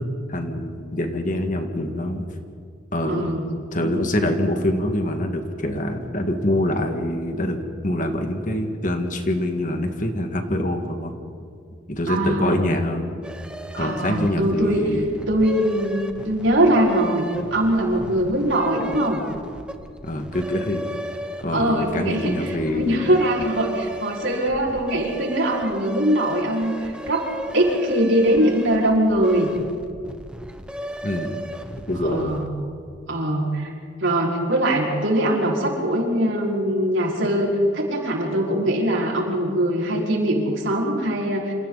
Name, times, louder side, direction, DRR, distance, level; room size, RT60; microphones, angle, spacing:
voice 1, 0.0-2.3 2.9-3.3 3.7-11.1 11.9-13.1 13.8-15.3 20.0-20.8 21.4-23.2 31.0-31.4 31.9-32.4, left 1 dB, 40° left, 5 dB, 2.0 m, -25 dB
voice 2, 3.0-3.4 12.1-12.6 13.7-14.8 15.3-19.2 21.5-29.5 32.0-32.5 33.1-33.7 34.0-41.5, right 1 dB, 80° right, -3 dB, 5.4 m, -22 dB
sound 1, 13.2-32.7, equal, 5° right, 1.2 m, -36 dB
28.5 x 27.5 x 4.2 m, 2.4 s
head